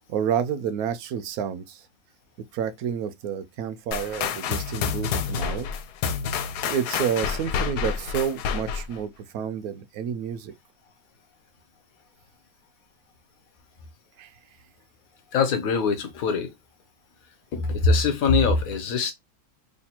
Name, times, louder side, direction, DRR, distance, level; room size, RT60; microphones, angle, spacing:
voice 1, 0.1-1.9 2.5-5.7 6.6-10.5 14.2-14.3, right 8 dB, 70° right, 1.0 m, -29 dB
sound 1, 3.9-9.0, left 7 dB, 80° left, 1.1 m, -28 dB
voice 2, 15.3-16.5 17.5-19.1, left 4 dB, 65° left, 1.2 m, -22 dB
3.2 x 2.3 x 4.3 m
omnidirectional pair, 1.7 m